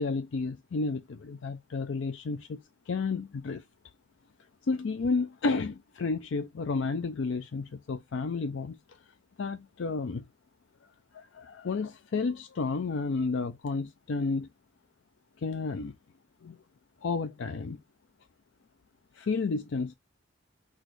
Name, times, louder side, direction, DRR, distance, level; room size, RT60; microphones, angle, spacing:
voice 1, 0.0-2.6 2.9-3.6 4.6-8.8 9.4-10.2 11.1-14.5 15.4-15.9 16.4-16.6 17.0-17.8 19.1-19.9, left 4 dB, 75° left, 0.5 m, -31 dB
6.1 x 2.5 x 3.1 m
head